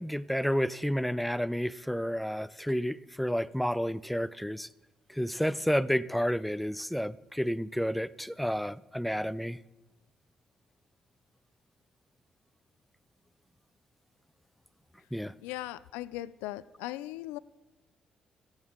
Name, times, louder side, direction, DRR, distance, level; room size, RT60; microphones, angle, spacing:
voice 1, 0.0-4.7 5.1-9.6 15.1-15.3, equal, ahead, 0.6 m, -30 dB
voice 2, 15.4-17.4, left 16 dB, 85° left, 0.3 m, -38 dB
25.5 x 8.8 x 3.6 m
hypercardioid pair, 50°, 3 cm